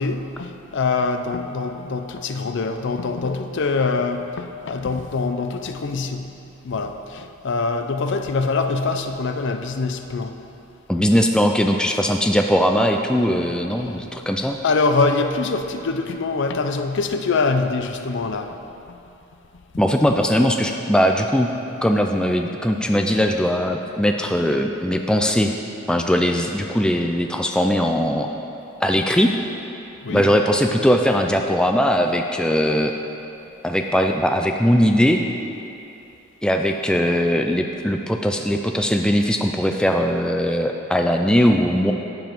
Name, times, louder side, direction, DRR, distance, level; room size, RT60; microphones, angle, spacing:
voice 1, 0.0-6.3 6.6-10.3 13.7-14.0 14.6-18.5 20.1-20.2 30.0-30.3, left 3 dB, 60° left, 7 dB, 0.5 m, -24 dB
voice 2, 10.9-14.6 19.8-21.5 21.8-25.5 25.9-28.3 28.8-29.3 30.1-32.9 33.6-35.2 36.4-41.9, equal, 5° left, 3 dB, 0.3 m, -20 dB
9.8 x 7.1 x 4.5 m, 2.8 s
head